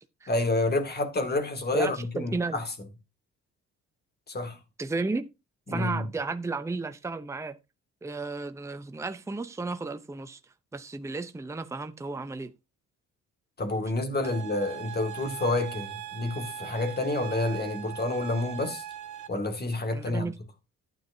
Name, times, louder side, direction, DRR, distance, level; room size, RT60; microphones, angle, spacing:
voice 1, 0.3-2.7 4.3-4.6 5.7-6.1 13.6-18.8 19.3-20.3, left 2 dB, 35° left, 2.1 m, -29 dB
voice 2, 1.7-2.6 4.8-5.3 5.7-7.6 8.0-10.4 10.7-12.5 19.9-20.3, right 3 dB, 10° right, 0.7 m, -33 dB
sound 1, 14.2-19.3, right 11 dB, 75° right, 1.6 m, -40 dB
12.0 x 9.3 x 2.7 m
cardioid pair, 90°, 30 cm